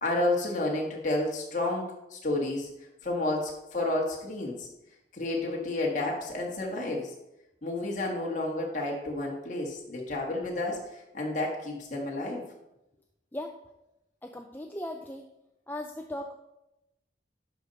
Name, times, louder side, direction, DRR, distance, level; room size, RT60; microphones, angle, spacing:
voice 1, 0.0-2.7 3.0-4.7 5.1-7.1 7.6-12.4, left 2 dB, 45° left, -2 dB, 1.5 m, -31 dB
voice 2, 14.2-15.3 15.7-16.3, left 1 dB, 10° left, 3 dB, 0.4 m, -38 dB
11.0 x 5.2 x 4.1 m, 0.91 s
head